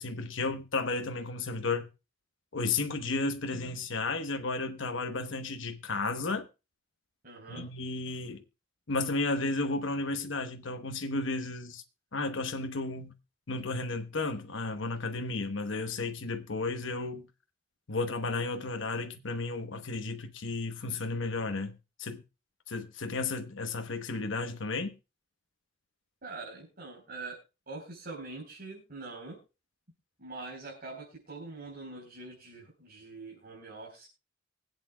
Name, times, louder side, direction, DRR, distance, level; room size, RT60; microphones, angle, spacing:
voice 1, 0.0-1.9 2.5-6.5 7.5-8.4 8.9-11.8 12.1-13.1 13.5-17.3 17.9-22.2 22.7-24.9, left 3 dB, 70° left, 1.0 m, -33 dB
voice 2, 7.2-7.7 26.2-27.4 27.7-29.4 30.2-34.1, right 3 dB, 50° right, 4.0 m, -44 dB
24.0 x 8.3 x 2.3 m
head